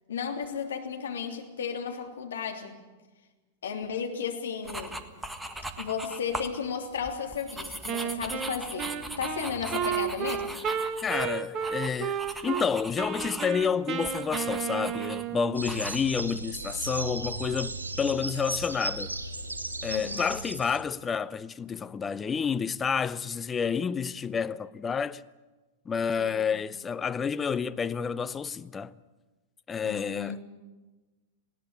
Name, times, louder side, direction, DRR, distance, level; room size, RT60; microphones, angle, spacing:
voice 1, 0.1-2.8 3.6-5.0 5.8-10.6 19.9-20.4 26.2-26.5 29.8-30.5, left 6 dB, 65° left, 3.0 m, -34 dB
sound 1, 4.6-6.6 7.0-13.6 14.0-15.3 15.7-16.0, right 1 dB, 5° right, 1.6 m, -39 dB
Wind instrument woodwind instrument, 7.9-12.7 13.0-15.6, right 8 dB, 30° right, 1.2 m, -32 dB
voice 2, 11.0-19.1 19.8-25.2 25.9-28.9 29.7-30.4, left 6 dB, 20° left, 0.6 m, -29 dB
sound 2, 15.6-20.8, right 2 dB, 85° right, 2.2 m, -35 dB
19.5 x 17.0 x 9.7 m
figure-of-eight pair, 100°, 0 cm